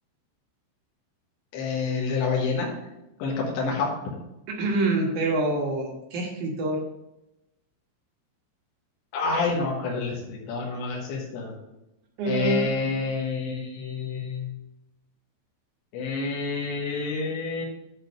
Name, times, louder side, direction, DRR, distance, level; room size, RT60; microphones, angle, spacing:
voice 1, 1.5-2.9 3.2-4.0 9.1-11.6 12.3-14.6 15.9-17.6, left 4 dB, 75° left, -2 dB, 3.6 m, -28 dB
voice 2, 4.5-6.8 12.2-12.7, right 2 dB, 75° right, -1 dB, 1.7 m, -26 dB
8.9 x 4.3 x 6.6 m, 0.92 s
omnidirectional pair, 5.6 m